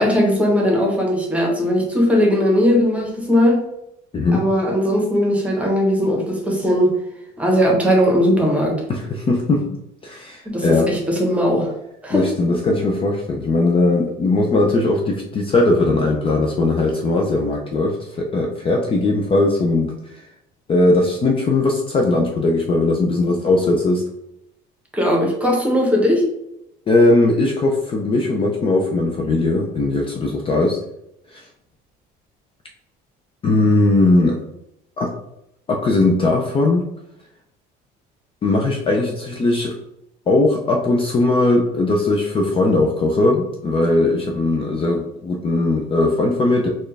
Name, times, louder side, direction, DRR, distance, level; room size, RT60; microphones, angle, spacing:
voice 1, 0.0-3.6 4.3-7.0 7.4-8.8 10.4-11.7 12.0-12.3 24.9-26.2, equal, 5° right, 0 dB, 1.0 m, -18 dB
voice 2, 4.1-4.5 8.9-9.6 10.0-10.9 12.1-20.2 20.7-24.0 26.9-30.8 31.3-31.5 33.4-34.4 35.0-35.1 35.7-36.9 38.4-39.7 40.3-46.7, left 2 dB, 30° left, 1 dB, 0.5 m, -19 dB
4.3 x 2.4 x 3.2 m, 0.83 s
cardioid pair, 120°, 19 cm